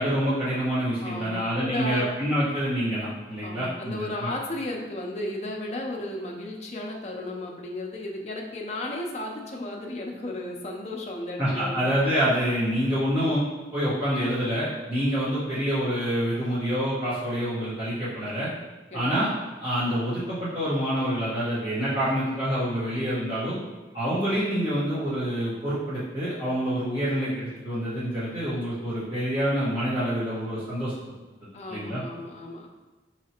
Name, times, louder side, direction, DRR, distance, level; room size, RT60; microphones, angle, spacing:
voice 1, 0.0-4.3 11.4-13.4 13.7-18.5 18.9-19.3 19.6-23.6 23.9-30.9 31.7-32.0, equal, 30° right, -15 dB, 1.5 m, -27 dB
voice 2, 1.0-2.2 3.4-11.9 18.9-19.2 31.5-32.7, left 1 dB, 35° left, -1 dB, 0.6 m, -34 dB
4.8 x 3.2 x 2.9 m, 1.2 s
head